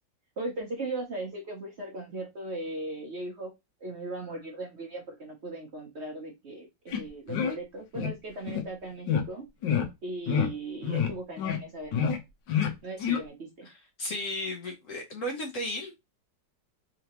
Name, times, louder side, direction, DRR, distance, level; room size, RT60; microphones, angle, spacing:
voice 1, 0.4-3.5 3.8-9.4 10.0-12.1 12.8-13.7, right 2 dB, 50° right, 0.9 m, -38 dB
sound 1, 6.9-7.0 7.3-7.6 7.9-8.1 8.5-8.6 9.1-9.2 9.6-9.9 10.3-10.5 10.8-11.1 11.4-11.6 11.9-12.2 12.5-12.7 13.0-13.2, left 7 dB, 80° left, 1.5 m, -27 dB
voice 2, 13.6-16.1, left 1 dB, 55° left, 1.0 m, -35 dB
3.8 x 3.4 x 2.9 m
omnidirectional pair, 1.9 m